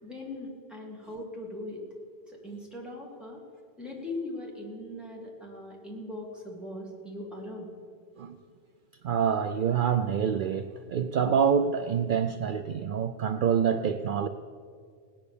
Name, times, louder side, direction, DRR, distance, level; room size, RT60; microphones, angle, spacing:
voice 1, 0.0-1.8 2.3-3.4 3.8-7.7, left 1 dB, ahead, 2.8 m, -40 dB
voice 2, 9.0-14.3, right 7 dB, 60° right, 0.6 m, -26 dB
17.0 x 10.5 x 6.9 m
omnidirectional pair, 1.1 m